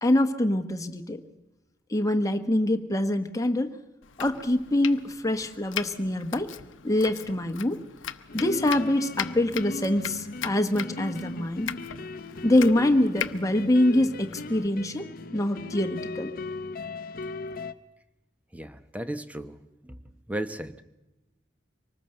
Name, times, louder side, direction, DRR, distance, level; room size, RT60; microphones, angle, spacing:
voice 1, 0.0-1.2 1.9-3.8 4.2-6.5 6.8-7.8 8.3-11.7 12.4-16.3, left 1 dB, 15° left, 6 dB, 1.3 m, -25 dB
Domestic sounds home sounds, 4.0-14.7, left 9 dB, 90° left, 0.9 m, -39 dB
sound 1, 8.3-17.7, left 2 dB, 50° left, 0.8 m, -38 dB
voice 2, 18.5-19.6 19.8-20.8, right 1 dB, 10° right, 11 dB, 0.9 m, -35 dB
24.5 x 19.5 x 7.9 m, 0.96 s
head